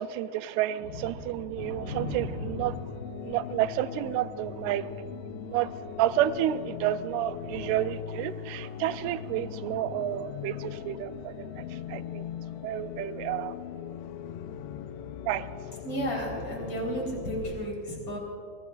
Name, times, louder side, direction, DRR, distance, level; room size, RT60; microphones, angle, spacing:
voice 1, 0.0-2.8 3.2-4.9 5.5-5.7 6.0-11.6 11.9-12.2 12.6-13.5 15.3-15.5, right 12 dB, 85° right, 13 dB, 2.5 m, -30 dB
voice 2, 1.3-2.7 15.8-18.2, equal, 30° left, -2 dB, 4.4 m, -34 dB
sound 1, 1.6-17.5, left 8 dB, 90° left, 2.8 m, -40 dB
24.0 x 20.0 x 2.5 m, 2.3 s
omnidirectional pair, 4.6 m